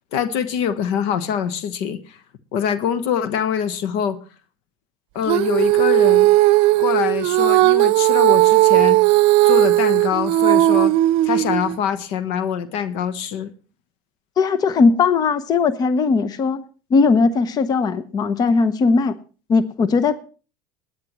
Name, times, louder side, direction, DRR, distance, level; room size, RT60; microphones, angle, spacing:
voice 1, 0.1-2.2 2.5-4.2 5.1-6.3 6.8-9.0 9.4-10.9 11.2-13.5, left 8 dB, 70° left, 15 dB, 1.1 m, -24 dB
Female singing, 5.2-11.8, right 17 dB, 65° right, 0.6 m, -16 dB
voice 2, 14.4-16.6 16.9-19.2 19.5-20.2, left 4 dB, 40° left, 14 dB, 0.9 m, -18 dB
21.5 x 9.5 x 3.1 m, 0.35 s
hypercardioid pair, 85°, 11 cm